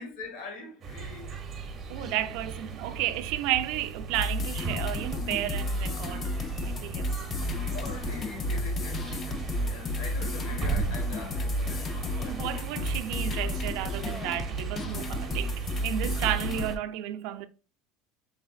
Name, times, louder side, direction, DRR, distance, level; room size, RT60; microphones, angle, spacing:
voice 1, 0.0-1.4 1.8-2.1 7.7-13.3, left 3 dB, 65° left, 1.5 m, -43 dB
sound 1, 0.8-16.8, right 5 dB, 25° right, 0.7 m, -37 dB
voice 2, 1.9-6.3 6.6-7.7 12.3-17.5, right 13 dB, 60° right, 0.5 m, -33 dB
sound 2, 4.1-16.8, left 2 dB, 25° left, 0.4 m, -32 dB
5.7 x 3.3 x 2.4 m
cardioid pair, 160°, 0 cm